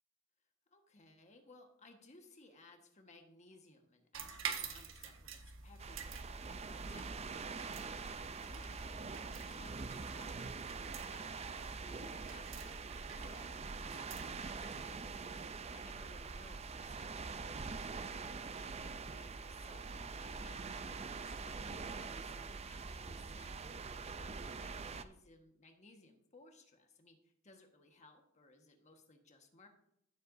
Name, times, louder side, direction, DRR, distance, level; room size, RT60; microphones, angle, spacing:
voice 1, 0.7-10.4 10.8-11.3 11.8-29.7, left 2 dB, 35° left, 4 dB, 1.5 m, -62 dB
sound 1, 4.1-15.5, right 6 dB, 80° right, 1.4 m, -49 dB
sound 2, 5.8-25.0, right 4 dB, 30° right, 0.5 m, -44 dB
15.5 x 7.7 x 2.7 m, 0.75 s
head